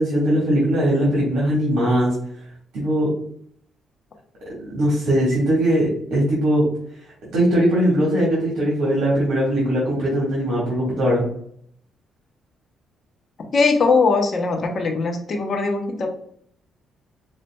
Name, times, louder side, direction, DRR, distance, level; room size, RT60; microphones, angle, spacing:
voice 1, 0.0-2.1 2.7-3.1 4.6-6.6 7.3-11.2, equal, 70° right, -4 dB, 1.5 m, -20 dB
voice 2, 13.5-16.1, left 4 dB, 50° left, 3 dB, 0.8 m, -20 dB
5.3 x 2.4 x 2.2 m, 0.65 s
cardioid pair, 90°, 0 cm